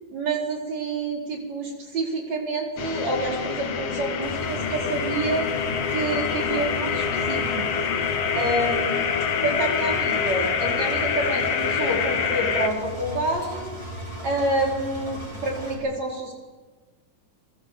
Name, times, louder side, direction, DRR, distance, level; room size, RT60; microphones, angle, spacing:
voice 1, 0.1-5.6 5.9-7.6 8.3-9.0 9.4-13.7 14.2-16.3, right 2 dB, 45° right, 0 dB, 5.5 m, -28 dB
sound 1, 2.8-12.7, left 6 dB, 50° left, 2.1 m, -26 dB
Engine, 4.2-15.7, equal, 10° right, 5.9 m, -37 dB
29.0 x 22.0 x 8.1 m, 1.3 s
omnidirectional pair, 4.3 m